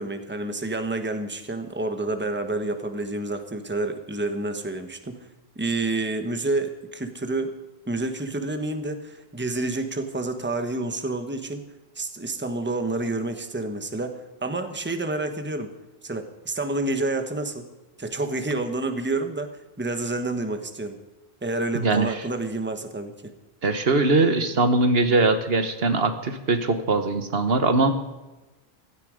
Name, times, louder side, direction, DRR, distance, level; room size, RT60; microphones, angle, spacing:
voice 1, 0.0-5.2 5.6-7.5 7.9-11.6 11.9-15.7 16.0-17.7 18.0-19.5 19.8-21.0 21.4-23.1, right 2 dB, 10° right, 7 dB, 1.2 m, -29 dB
voice 2, 21.7-22.2 23.6-27.9, right 3 dB, 70° right, 8 dB, 1.4 m, -21 dB
16.0 x 13.0 x 5.1 m, 1.1 s
omnidirectional pair, 1.1 m